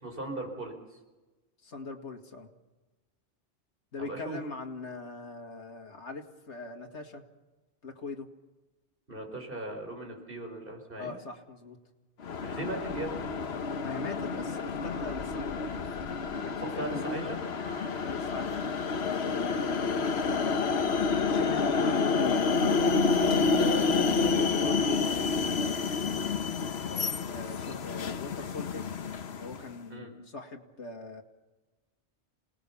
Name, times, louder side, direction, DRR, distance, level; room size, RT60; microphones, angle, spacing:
voice 1, 0.0-1.0 4.0-4.4 9.1-11.1 12.4-13.3 16.6-17.4 29.9-30.1, right 2 dB, 50° right, 3 dB, 4.7 m, -38 dB
voice 2, 1.6-2.5 3.9-7.2 7.8-8.3 11.0-11.8 13.8-15.8 16.4-17.4 18.0-18.6 19.2-22.7 23.5-25.8 27.3-28.9 29.2-31.2, left 3 dB, 85° left, 3 dB, 2.2 m, -40 dB
sound 1, 12.2-29.7, left 5 dB, 65° left, 1.2 m, -29 dB
sound 2, 13.5-26.3, right 5 dB, 80° right, 2.1 m, -43 dB
27.5 x 19.0 x 7.1 m, 1.2 s
omnidirectional pair, 1.2 m